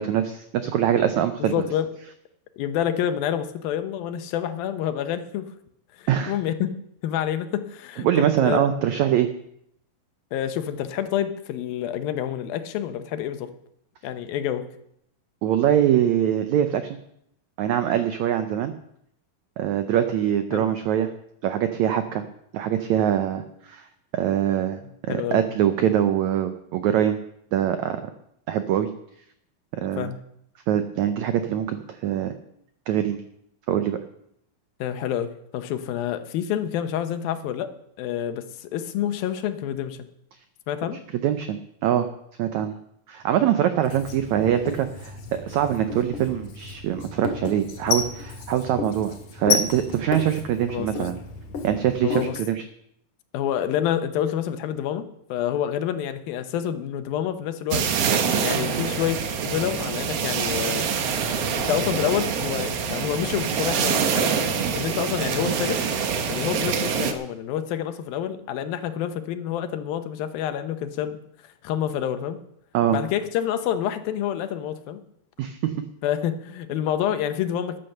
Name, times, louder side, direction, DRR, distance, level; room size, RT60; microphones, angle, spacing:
voice 1, 0.0-1.5 6.1-6.3 8.0-9.3 15.4-17.0 17.6-18.7 19.6-21.1 21.4-22.2 22.5-23.9 24.1-27.2 27.5-28.1 28.5-28.9 29.8-30.1 30.7-32.3 32.9-33.2 33.7-34.0 41.1-42.1 42.4-42.7 43.1-51.2 51.6-52.6 72.7-73.0 75.4-75.7, right 10 dB, 85° right, 9 dB, 1.6 m, -23 dB
voice 2, 1.4-1.9 2.6-5.5 6.0-6.7 7.0-8.7 10.3-13.5 14.0-14.6 20.5-20.7 25.1-25.4 29.8-30.2 34.8-37.7 38.0-40.1 40.7-41.0 50.7-51.1 52.0-52.4 53.3-55.0 55.3-57.9 58.4-59.2 59.4-60.8 61.5-64.3 64.7-65.9 66.3-71.2 71.6-72.4 72.9-75.0 76.0-77.8, left 10 dB, 75° left, 9 dB, 2.7 m, -28 dB
Writing, 43.8-52.3, left 6 dB, 55° left, 3.4 m, -32 dB
sound 1, 57.7-67.1, right 6 dB, 70° right, 1.5 m, -25 dB
13.5 x 10.0 x 6.6 m, 0.75 s
omnidirectional pair, 4.3 m